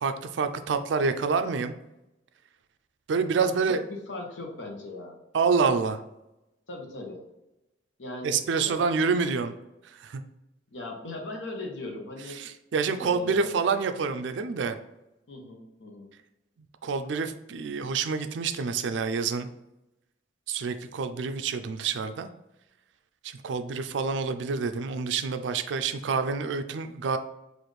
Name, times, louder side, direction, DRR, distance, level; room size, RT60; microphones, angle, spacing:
voice 1, 0.0-1.7 3.1-3.8 5.3-6.0 8.2-9.5 9.9-10.2 12.4-14.8 16.8-19.5 20.5-22.3 23.2-27.2, right 5 dB, 70° right, 9 dB, 0.4 m, -27 dB
voice 2, 3.4-5.2 6.7-7.2 8.0-8.4 8.6-8.8 10.7-12.4 12.9-13.6 15.3-16.1, left 2 dB, 80° left, 1 dB, 0.9 m, -39 dB
4.1 x 2.5 x 3.2 m, 0.93 s
head